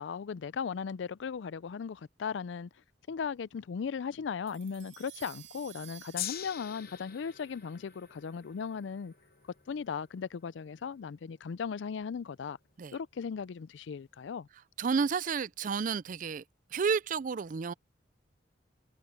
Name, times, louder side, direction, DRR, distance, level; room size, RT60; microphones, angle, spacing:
voice 1, 0.0-2.7 3.1-9.1 9.7-12.6 12.9-14.5, left 6 dB, 75° left, 0.4 m, -37 dB
sound 1, 4.5-9.0, right 14 dB, 80° right, 2.2 m, -55 dB
Gong, 6.2-12.5 13.3-13.4, left 12 dB, 55° left, 1.0 m, -45 dB
voice 2, 14.8-16.4 16.7-17.7, right 5 dB, 45° right, 0.4 m, -31 dB
head